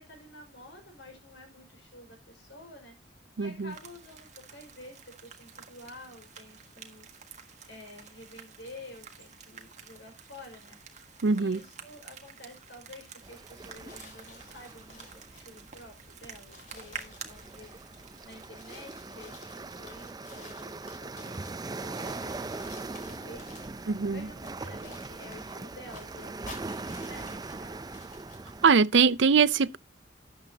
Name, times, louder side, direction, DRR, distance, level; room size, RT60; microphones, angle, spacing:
voice 1, 0.0-7.1 7.7-10.8 11.4-17.7 18.2-23.5 24.1-27.8, left 1 dB, 75° left, 5.2 m, -50 dB
voice 2, 3.4-3.7 11.2-11.6 23.9-24.3 28.6-29.8, right 5 dB, 80° right, 0.5 m, -22 dB
sound 1, 3.7-18.5, right 7 dB, 40° right, 1.7 m, -49 dB
sound 2, 13.2-28.7, right 3 dB, 20° right, 0.5 m, -41 dB
sound 3, 13.9-15.5 16.0-16.1 16.3-21.6 21.9-24.0 24.5-28.8, left 3 dB, 45° left, 3.8 m, -52 dB
13.0 x 8.7 x 2.8 m
head